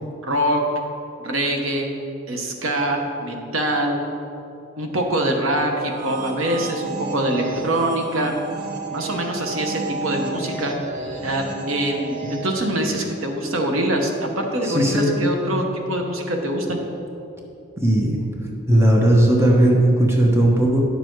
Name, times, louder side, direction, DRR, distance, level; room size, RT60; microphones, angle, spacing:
voice 1, 0.2-0.6 1.2-1.9 2.3-4.0 4.8-8.4 8.9-10.7 11.2-16.8, right 1 dB, 80° right, 2 dB, 1.1 m, -24 dB
sound 1, 5.8-13.1, right 3 dB, 40° right, 1.1 m, -32 dB
voice 2, 14.6-15.1 17.8-18.1 18.7-20.8, right 1 dB, 15° right, -1 dB, 1.0 m, -16 dB
10.5 x 6.9 x 4.6 m, 2.8 s
head